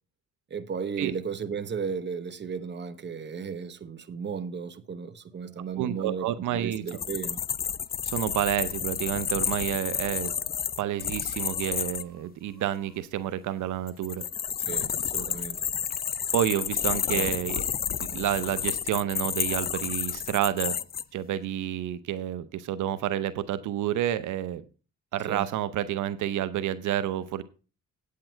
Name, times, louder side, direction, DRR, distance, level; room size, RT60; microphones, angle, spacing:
voice 1, 0.5-7.4 14.6-15.6 17.1-17.3 18.1-18.3 25.3-25.5, right 6 dB, 35° right, 1.0 m, -35 dB
Chicken rooster, 5.0-8.4 8.9-9.0 9.3-13.3 13.9-17.2 18.4-18.5 19.5-19.6 20.6-21.0, right 2 dB, 5° right, 5.7 m, -60 dB
voice 2, 5.8-7.0 8.0-10.3 10.8-14.3 16.3-17.6 18.0-20.8 21.1-24.6 25.1-27.4, right 11 dB, 80° right, 0.8 m, -29 dB
sound 1, 6.7-12.0 13.9-21.0, left 8 dB, 30° left, 0.4 m, -30 dB
8.8 x 8.6 x 4.5 m
cardioid pair, 90°, 30 cm